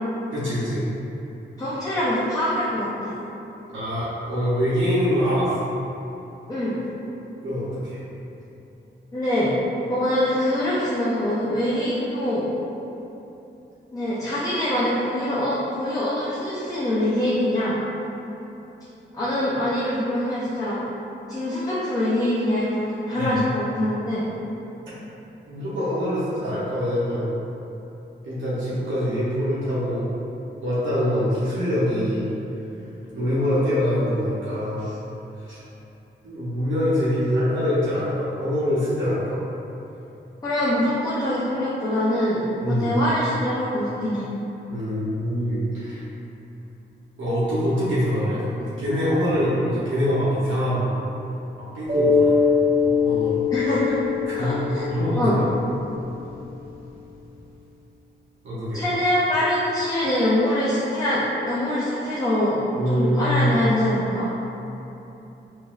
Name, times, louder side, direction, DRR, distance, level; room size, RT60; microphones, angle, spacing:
voice 1, 0.3-0.8 3.7-5.5 7.4-8.0 23.2-23.3 25.5-27.3 28.2-30.1 30.6-32.3 33.1-35.0 35.4-35.6 36.2-39.4 42.6-42.9 44.7-46.0 47.2-50.9 51.6-52.4 52.8-53.4 54.3-54.5 54.9-55.3 58.4-59.0 62.8-63.5, equal, 90° right, -10 dB, 0.8 m, -24 dB
voice 2, 1.6-3.1 6.5-6.7 9.1-9.5 9.9-12.4 13.9-17.8 19.1-20.8 21.3-24.2 40.4-44.2 53.5-54.0 54.4-54.9 55.1-55.4 58.7-62.6 62.9-64.3, left 1 dB, 20° left, -9 dB, 0.6 m, -24 dB
Mallet percussion, 51.9-56.3, left 5 dB, 50° right, 0.8 m, -22 dB
3.7 x 2.6 x 2.4 m, 2.9 s
cardioid pair, 70°, 19 cm